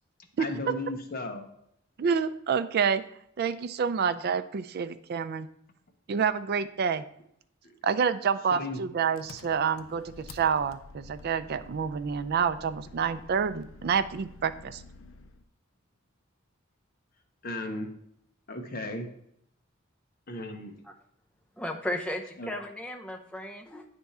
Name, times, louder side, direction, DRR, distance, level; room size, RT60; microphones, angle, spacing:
voice 1, 0.4-1.5 8.5-8.8 17.4-17.9 18.5-19.1 20.3-20.7 22.4-22.5, left 1 dB, 45° left, 3 dB, 0.9 m, -35 dB
voice 2, 2.0-3.0 3.4-5.5 6.1-7.1 7.8-14.8, right 6 dB, 50° right, 11 dB, 0.4 m, -28 dB
Engine, 9.1-15.4, left 3 dB, 75° left, 0.5 m, -50 dB
voice 3, 21.6-23.9, left 1 dB, 5° left, 2 dB, 0.6 m, -35 dB
8.9 x 3.5 x 4.2 m, 0.72 s
head